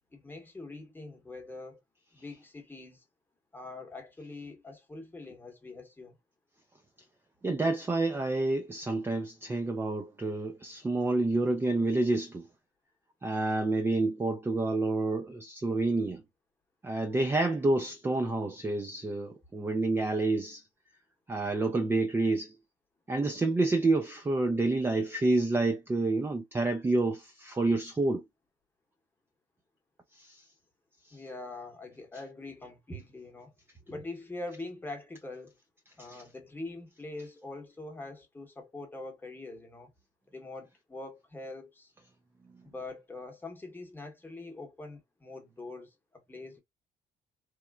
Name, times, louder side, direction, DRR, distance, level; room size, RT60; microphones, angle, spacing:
voice 1, 0.1-1.8 2.1-3.0 3.5-6.2 31.1-33.5 33.9-35.6 36.0-39.9 40.3-41.9 42.6-46.6, left 2 dB, 10° left, 0.9 m, -43 dB
voice 2, 7.4-12.5 13.2-16.2 16.8-20.6 21.3-22.6 23.1-28.2 30.1-30.4 31.1-31.2 36.0-36.2, right 2 dB, 15° right, 0.3 m, -28 dB
3.0 x 2.1 x 2.3 m
cardioid pair, 110°, 17 cm